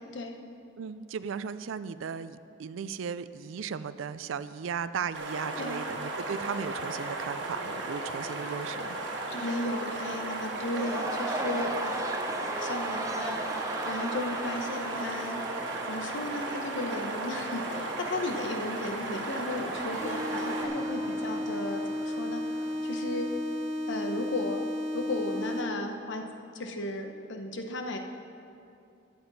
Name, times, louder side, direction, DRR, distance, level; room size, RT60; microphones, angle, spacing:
voice 1, 0.8-9.0, right 6 dB, 90° right, 14 dB, 0.4 m, -36 dB
sound 1, 5.1-20.6, right 2 dB, 65° right, 1.4 m, -35 dB
Cheering / Crowd, 6.7-23.4, right 2 dB, 15° right, 0.6 m, -39 dB
voice 2, 9.3-13.4 13.8-15.4 15.9-22.4 22.8-23.3 23.9-24.7 24.9-26.3 26.5-28.0, left 2 dB, 75° left, 4 dB, 0.9 m, -35 dB
sound 2, 19.9-25.9, left 1 dB, 40° right, 1.2 m, -33 dB
12.0 x 9.5 x 4.1 m, 2.6 s
head